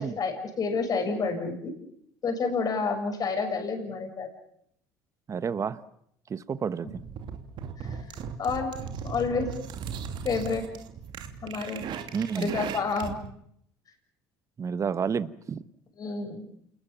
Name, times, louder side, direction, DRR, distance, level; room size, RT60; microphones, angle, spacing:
voice 1, 0.0-1.7 2.2-4.3 7.8-8.0 8.4-8.7 9.0-9.5 10.2-10.6 11.4-11.9 12.4-13.2 16.0-16.4, left 4 dB, 45° left, 5 dB, 6.9 m, -29 dB
voice 2, 5.3-5.8 6.3-6.9 12.1-12.5 14.6-15.6, right 6 dB, 35° right, 14 dB, 1.3 m, -30 dB
sound 1, 6.8-13.3, right 7 dB, 55° right, 2.8 m, -37 dB
28.5 x 21.0 x 7.3 m, 0.70 s
supercardioid pair, 85°, 9 cm